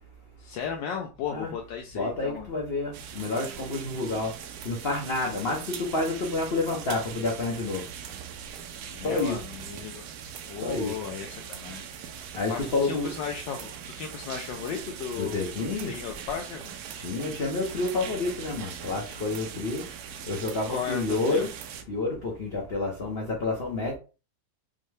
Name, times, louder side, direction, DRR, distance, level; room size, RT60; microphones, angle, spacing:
voice 1, 0.4-2.5 8.9-10.0 10.5-11.9 12.5-16.7 20.7-21.5, left 7 dB, 75° left, 1.2 m, -35 dB
voice 2, 1.9-4.3 4.6-7.8 9.0-9.4 10.6-10.9 12.3-13.1 15.2-15.9 17.0-19.8 20.3-21.5 21.9-23.9, left 3 dB, 50° left, 0.7 m, -29 dB
sound 1, 2.9-21.8, right 8 dB, 75° right, 0.9 m, -41 dB
5.5 x 2.1 x 3.3 m
omnidirectional pair, 2.1 m